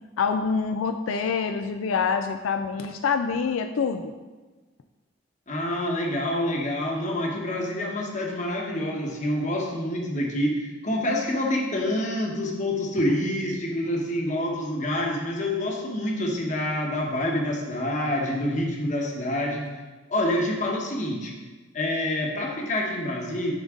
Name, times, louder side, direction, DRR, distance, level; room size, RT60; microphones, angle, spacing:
voice 1, 0.2-4.1, left 5 dB, 85° left, 7 dB, 0.4 m, -26 dB
voice 2, 5.5-19.8 20.1-21.3 21.7-23.5, left 1 dB, 35° left, 0 dB, 1.0 m, -27 dB
10.5 x 4.0 x 3.6 m, 1.3 s
head